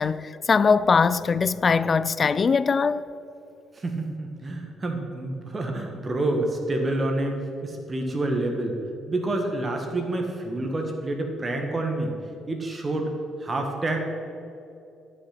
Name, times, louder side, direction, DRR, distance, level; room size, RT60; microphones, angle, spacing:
voice 1, 0.0-3.0, left 5 dB, 40° left, 0.3 m, -21 dB
voice 2, 3.7-8.8 9.1-12.2 12.5-13.1 13.4-14.1, right 2 dB, 35° right, 1.5 m, -28 dB
11.5 x 6.1 x 5.8 m
supercardioid pair, 70°, 0 cm